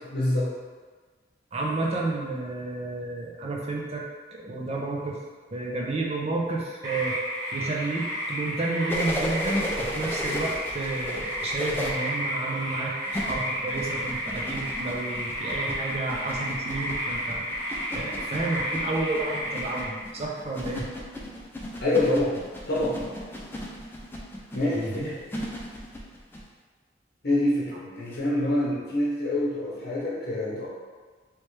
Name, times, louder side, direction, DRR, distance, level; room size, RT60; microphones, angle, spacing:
voice 1, 0.1-0.5 21.8-23.1 24.5-25.2 27.2-30.7, left 1 dB, 60° left, -7 dB, 0.8 m, -26 dB
voice 2, 1.5-4.0 4.3-5.2 5.5-7.2 7.5-17.5 17.9-20.9 24.7-25.1, right 2 dB, 35° right, -2 dB, 0.6 m, -31 dB
sound 1, 6.8-19.8, equal, 20° right, 1.0 m, -32 dB
sound 2, 8.9-11.9 13.1-26.4 28.1-28.2, left 1 dB, 10° left, 0.4 m, -35 dB
3.2 x 3.1 x 3.2 m, 1.4 s
head